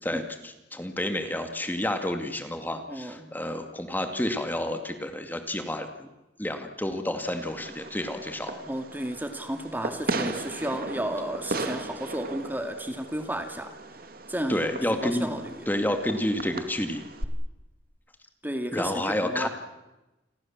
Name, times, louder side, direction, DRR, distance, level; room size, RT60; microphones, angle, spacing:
voice 1, 0.0-6.1 6.4-8.6 14.5-15.3 15.7-17.0 18.7-19.5, left 1 dB, 10° left, 6 dB, 2.2 m, -30 dB
voice 2, 2.9-3.3 8.7-13.7 14.3-14.6 15.0-15.7 18.4-19.5, right 1 dB, 10° right, 6 dB, 2.2 m, -33 dB
Fireworks, 7.2-17.2, right 2 dB, 55° right, 2.5 m, -37 dB
30.0 x 22.5 x 7.4 m, 1.0 s
head